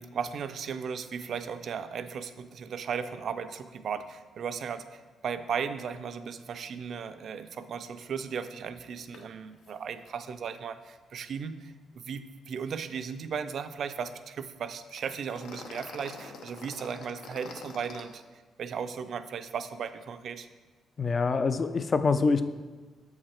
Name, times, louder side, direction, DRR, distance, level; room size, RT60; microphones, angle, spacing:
voice 1, 0.0-20.5, right 6 dB, 60° right, 10 dB, 0.4 m, -36 dB
sound 1, 9.1-9.2 9.5-9.7 10.0-10.1 15.0-18.0, left 4 dB, 80° left, 0.8 m, -45 dB
voice 2, 21.0-22.4, left 4 dB, 40° left, 11 dB, 0.4 m, -25 dB
7.0 x 4.8 x 4.4 m, 1.3 s
cardioid pair, 90°, 0 cm